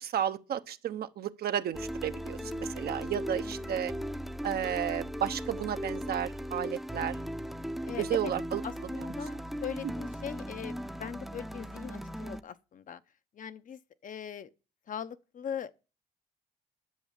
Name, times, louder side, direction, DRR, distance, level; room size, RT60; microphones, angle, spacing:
voice 1, 0.0-3.9 4.4-7.2 8.0-8.6, right 10 dB, 70° right, 1.0 m, -33 dB
sound 1, 1.7-12.4, equal, ahead, 0.7 m, -37 dB
voice 2, 2.4-3.0 3.3-3.8 7.9-8.3 8.6-13.0 13.3-14.5 14.9-15.7, left 8 dB, 50° left, 0.8 m, -41 dB
10.5 x 7.3 x 7.3 m
cardioid pair, 105°, 17 cm